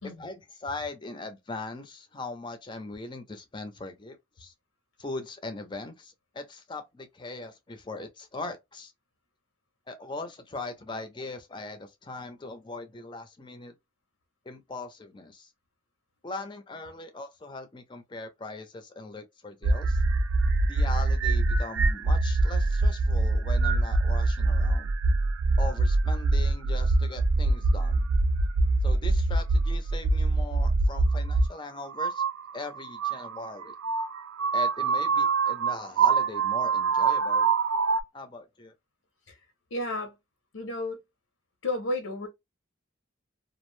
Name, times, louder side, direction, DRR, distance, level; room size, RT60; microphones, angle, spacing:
voice 1, 0.0-4.5 5.0-8.9 9.9-13.7 14.5-15.5 16.2-20.0 20.7-24.9 25.6-28.1 28.8-32.2 32.5-33.7 34.5-37.5 38.1-38.7, left 3 dB, 25° left, 0.5 m, -40 dB
sound 1, 19.6-31.5 31.9-38.0, right 3 dB, 75° right, 0.4 m, -24 dB
voice 2, 39.7-40.2 40.5-41.0 41.6-42.3, left 2 dB, 85° left, 0.7 m, -32 dB
2.4 x 2.0 x 3.0 m
head